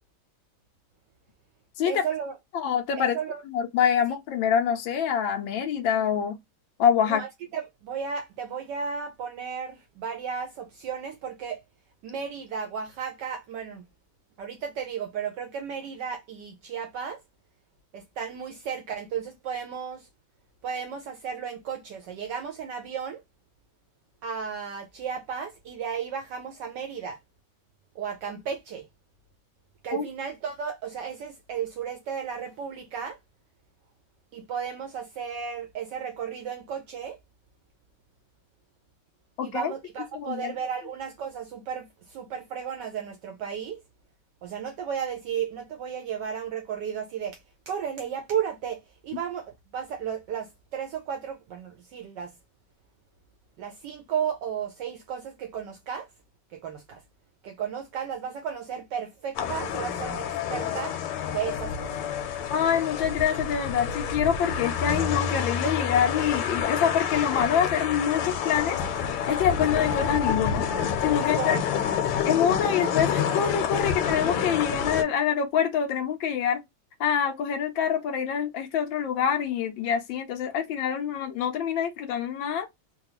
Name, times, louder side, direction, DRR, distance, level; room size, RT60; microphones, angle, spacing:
voice 1, 1.8-2.3 3.0-3.4 7.1-7.3 7.5-11.6 12.0-13.8 14.4-17.2 17.9-20.0 20.6-23.2 24.2-27.2 28.0-28.9 29.8-33.2 34.3-37.2 39.4-43.8 44.4-47.4 47.7-52.3 53.6-56.1 56.5-57.0 57.4-60.9 61.3-61.9 71.2-71.6, right 7 dB, 75° right, 1.0 m, -34 dB
voice 2, 2.5-3.2 3.4-6.4 6.8-7.2 29.9-30.1 39.4-39.7 40.1-40.5 62.5-68.8 69.3-70.7 71.0-71.6 72.2-76.6 77.0-82.7, left 8 dB, 70° left, 1.3 m, -25 dB
sound 1, 59.4-75.0, left 7 dB, 85° left, 1.6 m, -28 dB
3.9 x 2.3 x 2.9 m
omnidirectional pair, 2.4 m